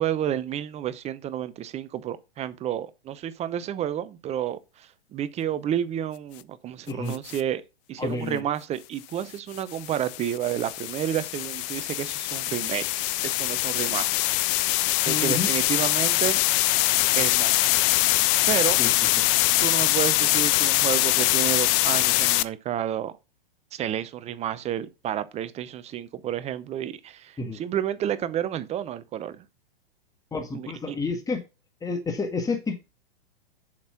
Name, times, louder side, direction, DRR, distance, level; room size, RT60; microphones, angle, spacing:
voice 1, 0.0-7.6 7.9-14.2 14.5-14.8 15.1-16.4 17.1-17.7 18.5-18.8 19.2-19.3 19.6-23.2 23.7-29.4 30.5-31.0, right 10 dB, 20° right, 0.7 m, -30 dB
sound 1, 7.1-7.4 9.5-22.4, left 19 dB, 35° left, 0.5 m, -23 dB
voice 2, 8.0-8.4 15.1-15.5 18.8-18.9 27.4-27.6 30.3-31.4 31.8-32.8, left 4 dB, 10° left, 1.8 m, -29 dB
7.3 x 6.1 x 5.9 m
hypercardioid pair, 115°, 30 cm